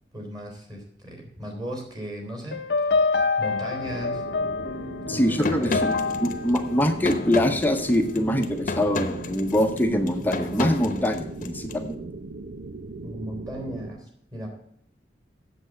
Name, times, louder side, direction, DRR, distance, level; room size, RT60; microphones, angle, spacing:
voice 1, 0.1-3.1 3.4-4.2 5.1-5.8 13.0-14.6, equal, 25° right, 2 dB, 3.3 m, -36 dB
sound 1, 2.5-7.8, left 4 dB, 75° left, 0.7 m, -27 dB
sound 2, 3.8-13.9, right 3 dB, 85° right, 0.7 m, -38 dB
voice 2, 5.1-12.1, left 1 dB, 10° left, 5 dB, 0.8 m, -24 dB
sound 3, 5.4-11.8, left 2 dB, 50° left, 1.0 m, -32 dB
8.0 x 7.7 x 6.4 m, 0.70 s
head